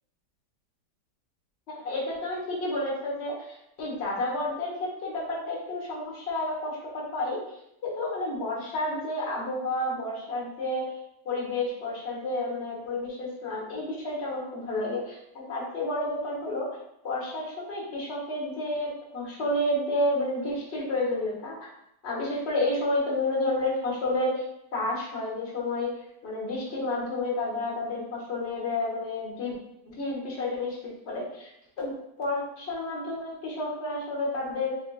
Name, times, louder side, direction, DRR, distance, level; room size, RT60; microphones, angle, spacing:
voice 1, 1.7-7.4 7.8-10.9 11.2-16.7 17.0-21.7 22.0-24.4 24.7-29.5 29.9-31.5 31.8-34.8, left 2 dB, 40° left, -4 dB, 1.4 m, -30 dB
6.1 x 2.7 x 2.4 m, 0.80 s
omnidirectional pair, 1.9 m